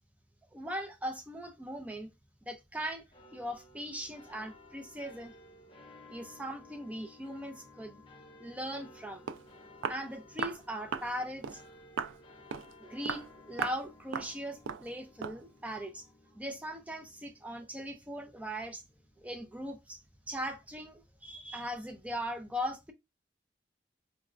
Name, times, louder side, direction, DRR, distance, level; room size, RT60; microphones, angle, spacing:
voice 1, 0.5-2.1 2.4-3.0 3.3-5.3 6.1-8.0 8.4-9.3 9.9-11.7 12.8-16.1 16.3-18.8 19.2-20.0 20.3-22.9, equal, 10° right, 0.4 m, -39 dB
sound 1, 3.1-19.8, left 2 dB, 25° left, 0.7 m, -57 dB
Walk footsteps, 8.9-9.0 9.3-9.5 9.8-10.0 10.4-10.6 10.9-11.1 11.4-11.6 12.0-12.2 12.5-12.7 13.1-13.3 13.6-13.8 14.1-14.3 14.7-14.9 15.2-15.4, right 7 dB, 85° right, 0.3 m, -36 dB
4.0 x 2.2 x 2.4 m
head